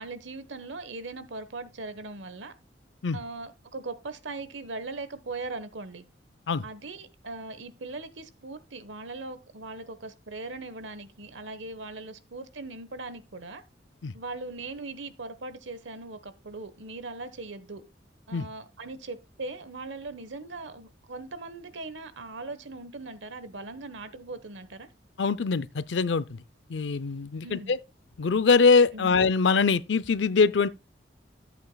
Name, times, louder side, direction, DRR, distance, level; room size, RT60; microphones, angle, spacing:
voice 1, 0.0-2.5 3.1-6.0 6.6-13.6 14.1-17.8 18.3-24.9 27.4-27.8 28.9-29.1, right 3 dB, 85° right, 1.1 m, -39 dB
voice 2, 25.2-26.4 26.7-27.8 28.2-30.7, left 4 dB, 75° left, 0.5 m, -23 dB
13.0 x 8.3 x 2.3 m
head